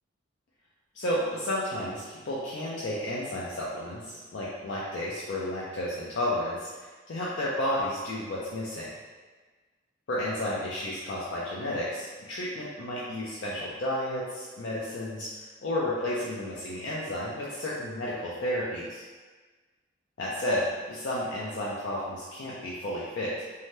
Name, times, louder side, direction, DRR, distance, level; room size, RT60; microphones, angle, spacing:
voice 1, 0.9-8.9 10.1-19.0 20.2-23.4, left 1 dB, 65° left, -7 dB, 0.4 m, -32 dB
2.7 x 2.1 x 3.1 m, 1.4 s
head